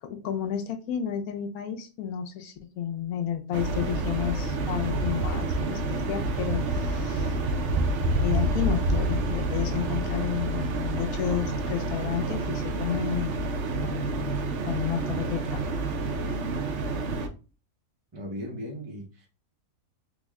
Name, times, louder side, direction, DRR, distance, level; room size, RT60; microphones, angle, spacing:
voice 1, 0.0-7.4 8.2-13.4 13.8-14.4 14.6-15.6, left 9 dB, 90° left, 1.1 m, -31 dB
sound 1, 3.5-17.3, right 2 dB, 65° right, 0.8 m, -28 dB
voice 2, 18.1-19.3, equal, 30° right, 0.4 m, -37 dB
3.5 x 2.1 x 3.5 m
omnidirectional pair, 1.5 m